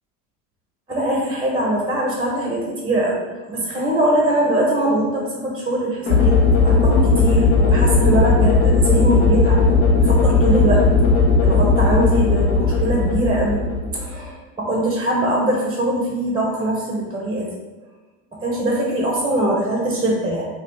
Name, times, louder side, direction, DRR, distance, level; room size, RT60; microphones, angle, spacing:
voice 1, 0.9-9.6 10.0-10.9 11.4-13.6 13.9-17.5 18.4-20.5, right 1 dB, 10° right, -2 dB, 0.6 m, -22 dB
sound 1, 6.1-14.3, left 3 dB, 65° left, 1.0 m, -16 dB
2.9 x 2.3 x 3.4 m, 1.2 s
supercardioid pair, 95°, 42 cm